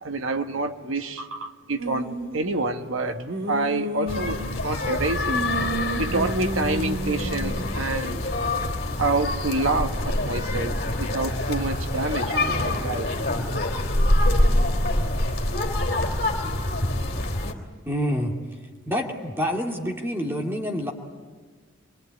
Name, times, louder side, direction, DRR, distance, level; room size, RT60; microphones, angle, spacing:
voice 1, 0.0-5.4 6.0-8.2 9.0-13.1, right 2 dB, 75° right, 6 dB, 1.4 m, -28 dB
sound 1, 1.8-2.4 3.1-4.9 5.3-7.8, right 1 dB, 55° right, 1.5 m, -31 dB
sound 2, 4.1-17.5, left 1 dB, 50° left, 3.1 m, -25 dB
voice 2, 17.9-18.3 18.9-20.9, equal, 10° right, 1 dB, 2.4 m, -27 dB
26.0 x 22.0 x 9.6 m, 1.4 s
head